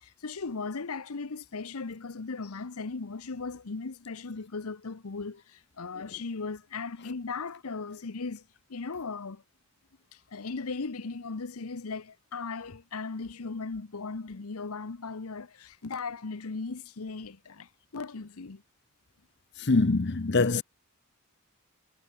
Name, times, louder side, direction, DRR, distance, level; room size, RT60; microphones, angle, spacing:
voice 1, 0.0-8.4 8.7-9.4 10.1-18.6, left 4 dB, 80° left, 0.9 m, -37 dB
voice 2, 19.6-20.6, left 3 dB, 50° left, 0.7 m, -24 dB
head